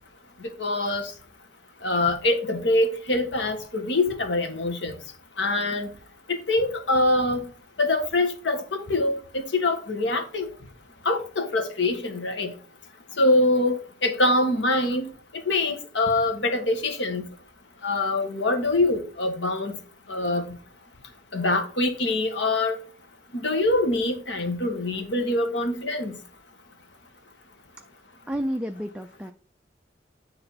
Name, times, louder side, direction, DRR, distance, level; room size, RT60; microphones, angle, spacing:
voice 1, 0.4-1.1 1.8-4.9 5.4-5.9 6.3-7.4 7.8-10.5 11.0-12.5 13.2-15.1 15.4-17.2 17.8-19.7 20.1-20.5 21.3-22.8 23.3-26.1, left 2 dB, 90° left, 1.5 m, -24 dB
voice 2, 28.3-29.3, equal, 5° right, 0.4 m, -30 dB
10.0 x 3.8 x 5.6 m
head